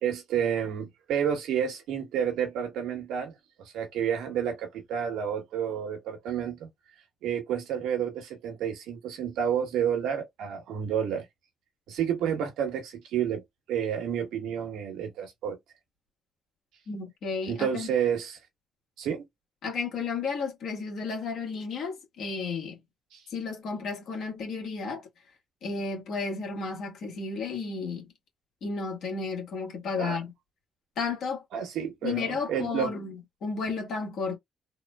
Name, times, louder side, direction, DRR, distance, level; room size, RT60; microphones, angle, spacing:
voice 1, 0.0-3.3 3.7-6.7 7.2-11.2 11.9-13.4 13.7-15.6 17.5-18.4 19.0-19.2 23.1-23.2 30.0-30.2 31.5-32.9, right 8 dB, 85° right, 1.1 m, -30 dB
voice 2, 16.9-17.9 19.6-22.8 23.3-25.1 25.6-28.1 28.6-30.3 31.0-31.4 32.0-33.1 33.4-34.4, left 4 dB, 75° left, 1.3 m, -33 dB
3.6 x 2.1 x 2.2 m
cardioid pair, 70°, 0 cm